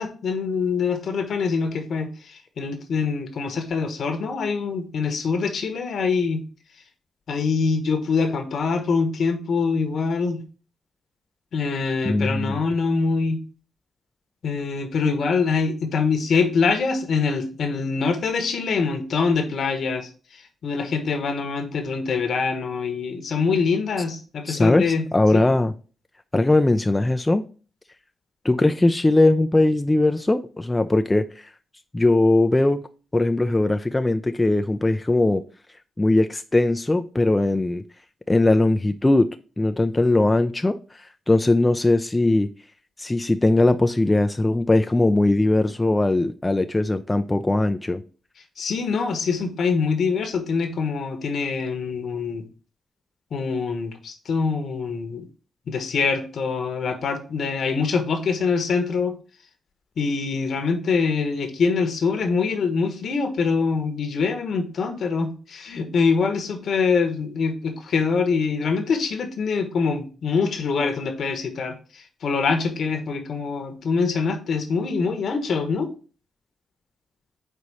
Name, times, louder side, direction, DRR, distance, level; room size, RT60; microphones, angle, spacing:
voice 1, 0.0-6.4 7.3-10.4 11.5-13.4 14.4-20.1 20.6-25.0 25.3-25.4 48.6-52.5 53.3-55.3 55.7-59.1 60.0-75.9, left 5 dB, 70° left, 1.2 m, -24 dB
voice 2, 12.0-12.6 24.5-25.7 26.3-27.4 28.4-31.5 31.9-32.9 33.1-35.4 36.0-37.8 38.3-39.3 39.6-40.8 41.3-42.5 43.0-48.0, left 2 dB, 20° left, 0.4 m, -20 dB
4.8 x 4.1 x 5.5 m
cardioid pair, 70°, 0 cm